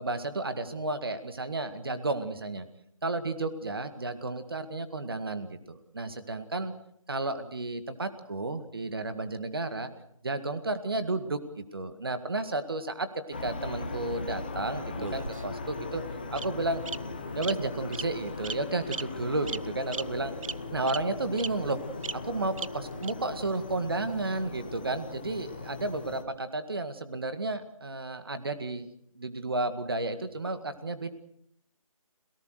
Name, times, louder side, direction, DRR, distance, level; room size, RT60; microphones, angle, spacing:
voice 1, 0.0-2.7 3.0-6.7 7.1-9.9 10.2-16.0 16.3-16.8 17.3-20.3 20.7-21.8 22.1-28.9 29.2-31.1, right 2 dB, 40° right, 10 dB, 2.0 m, -32 dB
sound 1, 13.3-26.2, left 3 dB, 15° left, 1.0 m, -39 dB
Bird vocalization bird call bird song, 14.9-15.7 16.4-16.5 16.9-17.0 17.4-17.5 17.9-18.1 18.4-18.6 18.9-19.0 19.5-19.6 19.9-20.0 20.4-20.5 20.9-21.0 21.4-21.5 22.0-22.1 22.6-22.7 23.0-23.1, right 4 dB, 65° right, 0.8 m, -35 dB
27.0 x 18.5 x 6.5 m, 0.72 s
figure-of-eight pair, 180°, 18 cm